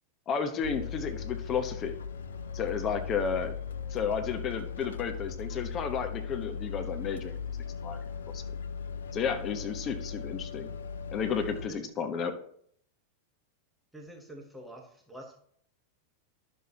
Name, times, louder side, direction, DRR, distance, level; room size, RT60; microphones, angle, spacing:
voice 1, 0.3-2.0 2.5-3.5 3.9-7.3 7.8-8.0 8.3-8.4 9.1-10.7 11.1-12.3, left 6 dB, 30° left, 6 dB, 1.1 m, -32 dB
sound 1, 0.6-11.7, left 6 dB, 65° left, 0.6 m, -38 dB
voice 2, 13.9-15.4, right 1 dB, 5° right, 1 dB, 1.3 m, -47 dB
11.5 x 6.4 x 3.0 m, 0.63 s
figure-of-eight pair, 90°, 0 cm